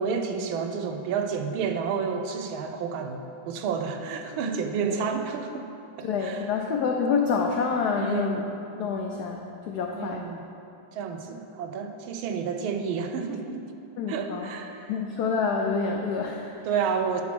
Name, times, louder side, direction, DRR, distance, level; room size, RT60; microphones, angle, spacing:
voice 1, 0.0-5.7 6.0-6.5 8.0-8.4 10.0-10.4 10.9-13.6 14.1-14.9 16.6-17.2, right 6 dB, 80° right, 6 dB, 1.4 m, -30 dB
voice 2, 6.0-8.4 8.7-9.4 9.7-10.2 14.0-14.5 14.9-16.5, left 5 dB, 85° left, 2 dB, 0.8 m, -27 dB
10.5 x 3.9 x 6.0 m, 2.7 s
omnidirectional pair, 2.3 m